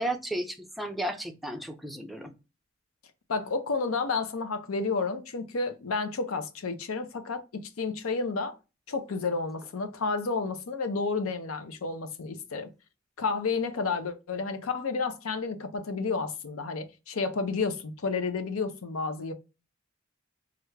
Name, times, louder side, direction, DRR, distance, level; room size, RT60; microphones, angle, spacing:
voice 1, 0.0-2.3, right 1 dB, ahead, 0.4 m, -33 dB
voice 2, 3.3-8.6 8.9-12.7 13.2-19.3, left 4 dB, 85° left, 0.6 m, -31 dB
3.4 x 2.4 x 3.1 m
head